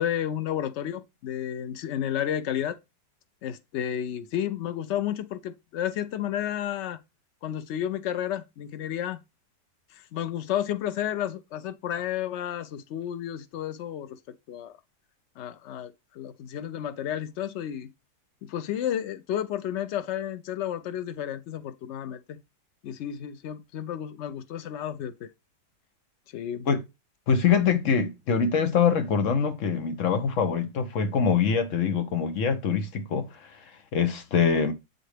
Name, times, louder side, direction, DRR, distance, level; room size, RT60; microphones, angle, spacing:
voice 1, 0.0-2.8 3.4-7.0 7.4-9.2 9.9-14.2 14.5-14.7 15.4-17.9 18.4-22.4 22.8-25.3 26.3-26.7, left 10 dB, 80° left, 0.6 m, -31 dB
voice 2, 27.3-33.3 33.9-34.7, left 6 dB, 55° left, 1.1 m, -24 dB
7.5 x 4.3 x 3.2 m
omnidirectional pair, 1.8 m